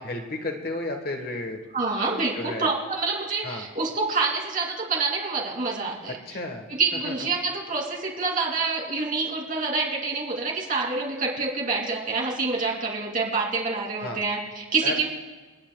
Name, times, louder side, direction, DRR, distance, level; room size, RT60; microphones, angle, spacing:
voice 1, 0.0-1.6 2.3-2.7 3.4-3.7 6.1-6.7 6.9-7.3 14.0-14.2 14.8-15.1, left 2 dB, 45° left, 4 dB, 1.3 m, -33 dB
voice 2, 1.7-6.2 6.7-15.1, right 4 dB, 40° right, -2 dB, 2.9 m, -27 dB
29.5 x 10.0 x 2.3 m, 1.3 s
head